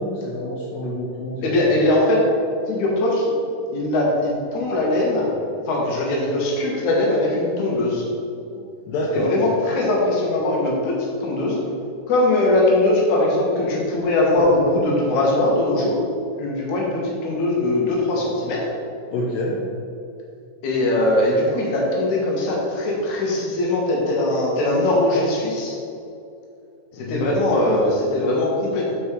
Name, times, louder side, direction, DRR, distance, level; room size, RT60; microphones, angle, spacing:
voice 1, 0.0-1.6 8.9-9.4 19.1-19.6 26.9-27.4, left 1 dB, 75° left, -4 dB, 2.5 m, -27 dB
voice 2, 1.4-2.2 2.7-3.3 3.7-5.3 5.7-8.0 9.1-11.6 12.1-16.0 16.4-18.6 20.6-25.8 27.0-29.0, left 1 dB, 60° left, -3 dB, 2.7 m, -20 dB
8.9 x 5.3 x 4.6 m, 2.5 s
omnidirectional pair, 4.1 m